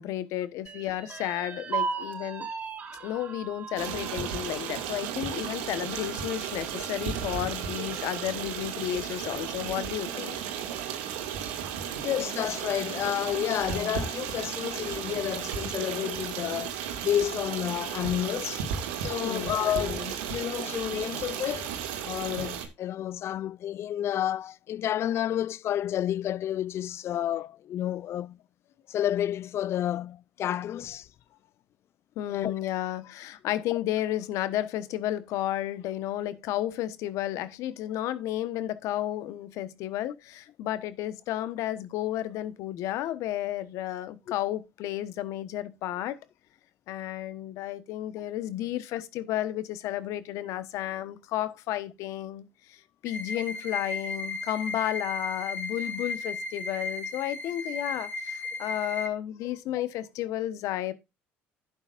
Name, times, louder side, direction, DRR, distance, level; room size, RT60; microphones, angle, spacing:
voice 1, 0.0-2.5 3.0-10.4 12.0-12.1 19.2-20.1 32.2-46.2 46.9-60.9, left 13 dB, 70° left, 1.2 m, -32 dB
sound 1, 0.6-8.3 8.7-8.8 9.2-9.9, right 5 dB, 35° right, 4.3 m, -39 dB
Stream, 3.8-22.7, right 8 dB, 85° right, 2.2 m, -34 dB
voice 2, 12.0-18.6 19.0-20.0 20.3-21.7 22.0-28.4 28.9-31.1 32.3-32.5, left 11 dB, 50° left, 0.4 m, -30 dB
sound 2, 53.1-59.1, left 2 dB, 35° left, 2.4 m, -35 dB
11.5 x 8.8 x 2.5 m
supercardioid pair, 80°, 5 cm